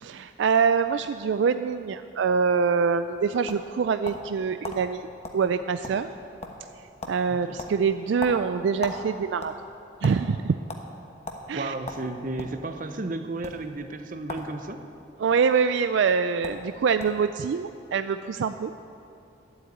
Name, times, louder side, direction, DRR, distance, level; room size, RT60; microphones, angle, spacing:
voice 1, 0.0-5.1 5.3-6.1 7.1-9.5 10.0-10.6 11.5-11.7 15.2-18.7, right 6 dB, 70° right, 10 dB, 0.3 m, -24 dB
sound 1, 3.0-4.3 4.6-4.8 5.2-5.4 5.7-6.2 6.4-6.7 7.0-7.2 7.6-9.0 9.3-10.2 10.7-10.8 11.3-11.4 11.9-12.6 13.3-13.5 14.2-14.5 14.8-15.4 16.1-16.2 16.4-16.6 17.0-17.3, left 2 dB, 35° left, 1.2 m, -37 dB
voice 2, 7.3-7.6 11.5-14.8, right 2 dB, 40° right, 8 dB, 0.7 m, -33 dB
12.5 x 8.1 x 8.5 m, 2.6 s
head